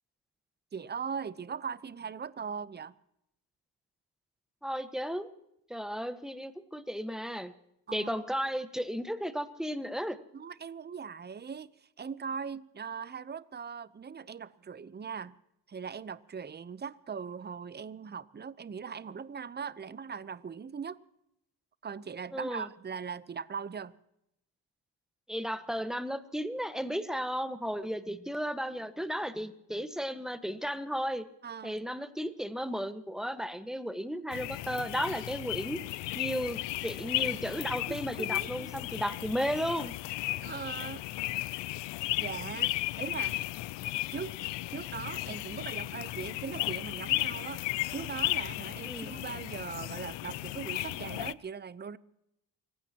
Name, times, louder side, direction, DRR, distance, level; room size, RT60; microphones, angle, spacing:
voice 1, 0.7-2.9 7.9-8.1 10.3-15.4 15.7-21.0 21.8-23.9 31.4-31.8 37.9-38.7 40.4-41.0 42.2-43.4 44.1-44.4 44.7-52.0, right 6 dB, 25° right, 0.7 m, -40 dB
voice 2, 4.6-5.3 5.7-7.5 7.9-10.2 22.3-22.7 25.3-31.2 31.6-35.8 36.1-39.9 48.9-49.1, equal, ahead, 1.4 m, -34 dB
sound 1, 34.3-51.3, left 17 dB, 80° left, 0.6 m, -35 dB
29.0 x 16.0 x 2.9 m
cardioid pair, 85°, 43 cm